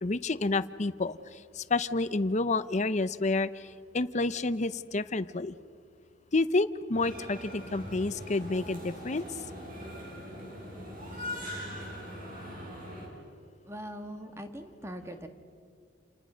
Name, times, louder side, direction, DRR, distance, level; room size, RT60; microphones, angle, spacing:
voice 1, 0.0-5.5 6.3-9.3, left 3 dB, 40° left, 14 dB, 0.7 m, -29 dB
sound 1, 6.9-13.1, equal, 45° right, 7.5 m, -41 dB
voice 2, 13.7-15.3, equal, 15° right, 6 dB, 1.8 m, -41 dB
29.5 x 29.0 x 6.3 m, 2.1 s
head